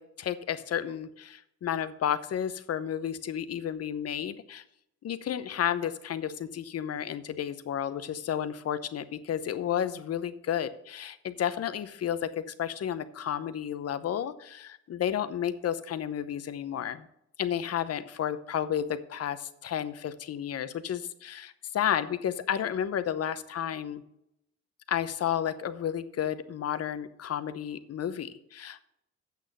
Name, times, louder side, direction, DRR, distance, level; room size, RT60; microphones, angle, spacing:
voice 1, 0.0-4.6 5.0-17.1 17.4-24.0 24.9-28.8, left 9 dB, 55° left, 13 dB, 0.8 m, -32 dB
8.3 x 6.2 x 6.6 m, 0.79 s
cardioid pair, 90°, 30 cm